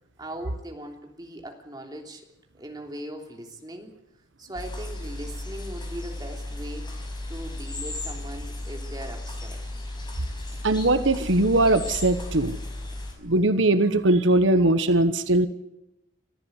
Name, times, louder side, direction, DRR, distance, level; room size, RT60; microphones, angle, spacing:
voice 1, 0.2-2.2 2.5-3.9 4.4-6.9 7.3-9.6, right 1 dB, 20° right, 2 dB, 3.3 m, -39 dB
sound 1, 4.6-13.1, left 1 dB, 25° left, 5.7 m, -35 dB
voice 2, 10.6-12.6 13.2-15.5, right 2 dB, 85° right, 11 dB, 1.2 m, -20 dB
26.0 x 14.5 x 8.2 m, 0.91 s
head